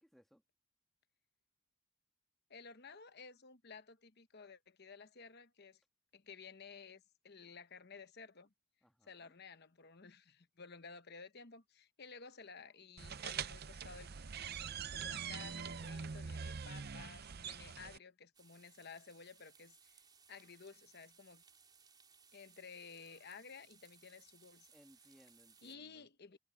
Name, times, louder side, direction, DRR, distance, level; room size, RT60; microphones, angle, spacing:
voice 1, 0.0-0.4 8.8-9.3 24.7-26.1, equal, ahead, 1.4 m, -66 dB
voice 2, 2.5-5.8 6.1-8.5 9.0-14.1 14.9-20.0 20.3-21.4 22.3-24.7 25.6-26.4, left 5 dB, 45° left, 1.0 m, -54 dB
sound 1, 13.0-18.0, right 6 dB, 45° right, 0.6 m, -44 dB
sound 2, 18.3-25.8, right 6 dB, 20° right, 4.0 m, -65 dB
head